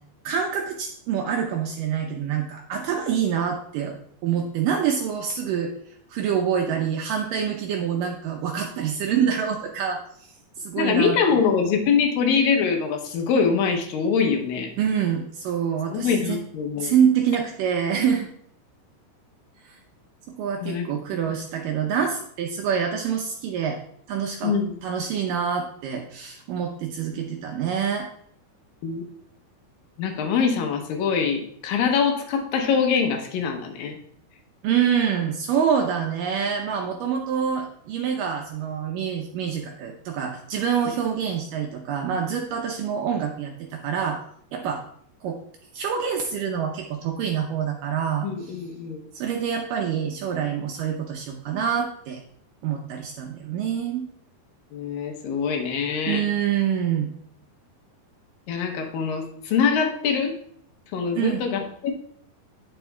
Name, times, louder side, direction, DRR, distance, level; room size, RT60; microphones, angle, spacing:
voice 1, 0.2-4.0 4.2-5.7 6.1-10.0 10.6-11.4 14.8-16.4 16.8-18.3 20.3-23.8 24.1-24.5 24.8-28.1 34.6-44.2 44.5-44.8 45.2-45.4 45.7-48.6 49.1-52.2 52.6-54.1 56.1-57.1 61.1-61.5, right 8 dB, 80° right, 1 dB, 2.0 m, -26 dB
voice 2, 10.8-14.7 15.9-16.9 20.6-20.9 24.4-24.8 28.8-29.0 30.0-34.0 48.2-49.0 54.7-56.2 58.5-60.4 60.9-61.9, left 6 dB, 75° left, 4 dB, 2.5 m, -24 dB
9.1 x 7.3 x 2.3 m, 0.64 s
omnidirectional pair, 4.5 m